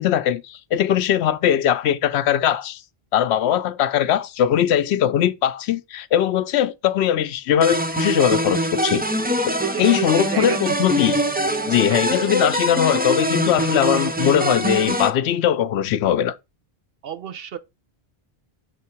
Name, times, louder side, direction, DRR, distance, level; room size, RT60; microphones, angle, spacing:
voice 1, 0.0-2.8 3.1-9.0 9.5-11.2 11.7-16.4, left 10 dB, 85° left, 0.8 m, -20 dB
sound 1, 7.6-15.1, right 1 dB, 15° right, 0.3 m, -23 dB
voice 2, 9.7-10.6 11.9-12.1 17.0-17.6, right 9 dB, 65° right, 0.8 m, -32 dB
6.7 x 3.6 x 4.4 m
omnidirectional pair, 1.1 m